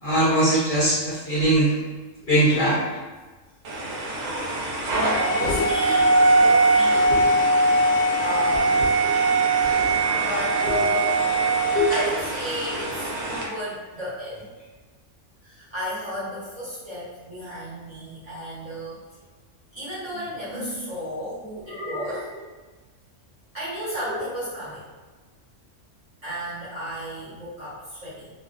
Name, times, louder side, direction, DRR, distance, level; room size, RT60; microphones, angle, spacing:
voice 1, 0.0-1.7 2.3-2.8 5.1-5.2 5.4-5.6 7.0-7.3 9.0-9.2 9.7-10.0 10.7-10.8 11.7-11.9, right 1 dB, 50° left, -9 dB, 0.7 m, -22 dB
sound 1, 3.7-13.4, right 2 dB, 90° right, 1.0 m, -21 dB
voice 2, 5.3-7.2 8.2-8.9 10.1-11.4 11.9-14.5 15.4-19.0 19.7-22.3 23.5-24.9 26.2-28.3, equal, 30° right, -11 dB, 0.9 m, -33 dB
sound 2, 20.1-20.9 21.6-22.5 24.0-24.5, equal, 60° right, 1.1 m, -35 dB
2.4 x 2.2 x 2.4 m, 1.3 s
omnidirectional pair, 1.3 m